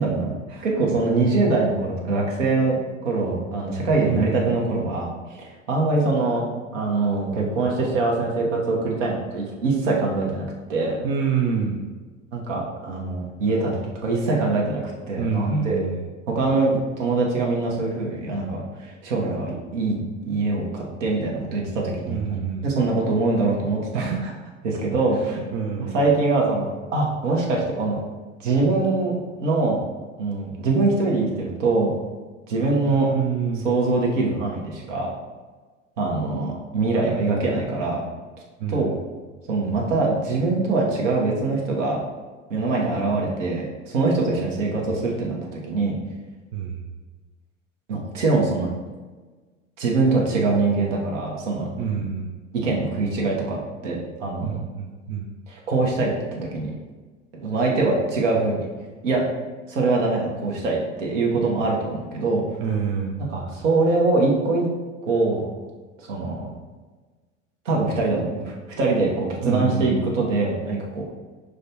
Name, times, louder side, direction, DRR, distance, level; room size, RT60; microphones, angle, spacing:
voice 1, 0.0-0.3 0.6-6.4 6.7-11.0 12.3-15.8 16.3-24.1 24.6-25.4 25.8-28.0 28.4-29.1 29.4-29.8 30.2-31.9 32.5-33.1 33.6-35.1 36.0-38.0 38.7-38.9 39.5-42.0 42.5-45.9 47.9-48.7 49.8-51.7 52.5-54.6 55.5-56.7 57.3-58.7 59.0-59.2 59.7-62.4 63.2-64.7 65.1-65.5 66.0-66.5 67.6-71.1, right 3 dB, 70° right, -2 dB, 1.1 m, -23 dB
voice 2, 4.0-4.6 11.0-11.9 15.2-16.1 22.1-22.7 23.9-24.3 24.7-24.8 25.1-26.0 32.8-33.6 38.6-38.9 43.1-43.4 46.5-46.9 51.8-52.4 54.4-55.3 62.6-63.3 69.4-70.2, right 6 dB, 50° right, 0 dB, 0.6 m, -27 dB
6.3 x 2.3 x 2.7 m, 1.3 s
hypercardioid pair, 75°, 38 cm